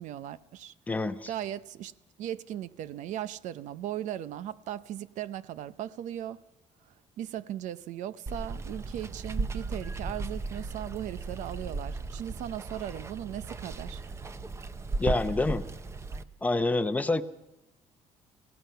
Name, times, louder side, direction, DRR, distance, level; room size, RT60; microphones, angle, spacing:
voice 1, 0.0-0.7 1.3-1.9 2.2-6.4 7.2-14.0, right 11 dB, 80° right, 0.7 m, -37 dB
voice 2, 0.9-1.3 15.0-15.6 16.4-17.2, left 2 dB, 10° left, 0.7 m, -27 dB
Water, 8.3-16.2, right 3 dB, 20° right, 0.7 m, -36 dB
27.5 x 17.0 x 5.7 m
cardioid pair, 160°, 12 cm